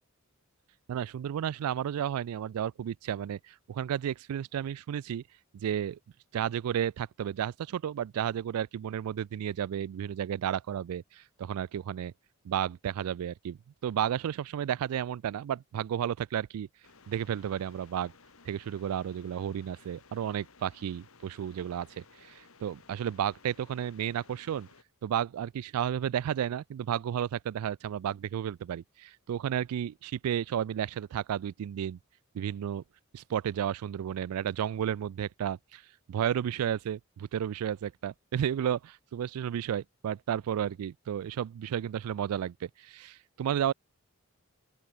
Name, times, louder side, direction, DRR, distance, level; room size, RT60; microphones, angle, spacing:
voice 1, 0.9-5.2 5.5-6.0 6.3-12.1 12.4-16.7 17.1-18.1 18.5-24.7 25.0-32.0 32.3-32.8 33.1-35.8 36.1-43.7, right 9 dB, 85° right, 0.3 m, -32 dB
sound 1, 16.8-24.8, left 4 dB, 75° left, 2.0 m, -58 dB
open air
head